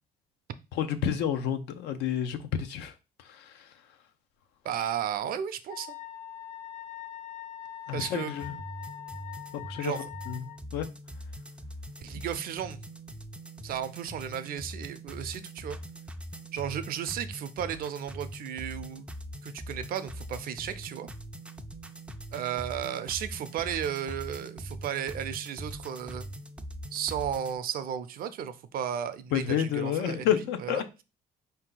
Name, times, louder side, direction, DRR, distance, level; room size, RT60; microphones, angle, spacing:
voice 1, 0.7-2.9 3.3-3.5 7.9-8.5 9.5-9.9 10.3-10.4 10.7-10.9 29.3-30.8, left 9 dB, 85° left, 0.6 m, -29 dB
voice 2, 4.6-6.0 7.9-8.3 9.8-10.1 12.0-12.8 13.6-15.8 16.5-19.1 19.4-21.1 22.3-26.3 26.9-31.0, right 9 dB, 60° right, 0.5 m, -34 dB
Wind instrument woodwind instrument, 5.7-10.6, left 11 dB, 55° left, 0.8 m, -43 dB
sound 1, 8.4-27.6, equal, 5° right, 0.4 m, -42 dB
4.4 x 2.7 x 3.8 m
cardioid pair, 110°, 17 cm